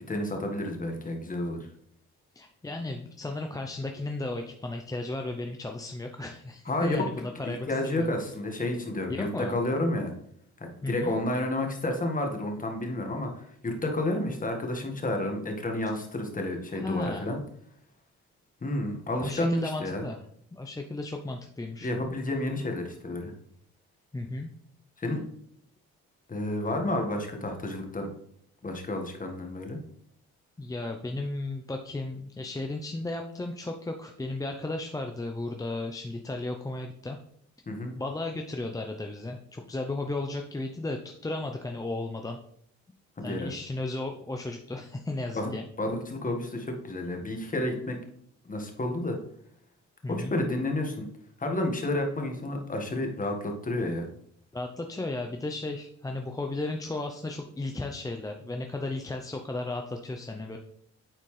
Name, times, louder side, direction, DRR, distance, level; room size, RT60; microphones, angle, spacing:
voice 1, 0.1-1.7 6.7-10.1 10.6-17.4 18.6-20.0 21.8-23.3 25.0-25.2 26.3-28.1 28.6-29.8 37.7-37.9 43.2-43.5 45.4-45.5 45.8-48.0 48.5-49.2 50.1-51.1 51.4-54.1, left 1 dB, 25° left, 3 dB, 1.6 m, -30 dB
voice 2, 2.3-8.1 9.1-9.5 10.8-11.1 16.7-17.3 19.2-20.2 20.5-21.9 24.1-24.5 30.6-37.2 37.9-42.4 43.2-45.6 50.0-50.4 54.5-60.6, left 2 dB, 10° left, 3 dB, 0.6 m, -34 dB
9.1 x 4.2 x 3.2 m, 0.67 s
cardioid pair, 90°, 30 cm